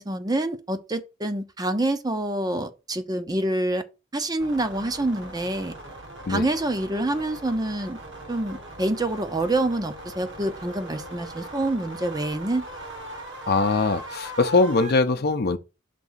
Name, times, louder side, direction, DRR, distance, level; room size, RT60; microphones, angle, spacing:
voice 1, 0.0-3.8 4.1-5.7 6.3-8.0 8.3-12.7, right 1 dB, 20° right, 0.6 m, -27 dB
sound 1, 4.4-14.9, right 1 dB, 65° right, 1.4 m, -40 dB
voice 2, 13.5-15.6, left 3 dB, 55° left, 0.6 m, -21 dB
6.0 x 3.5 x 5.6 m
head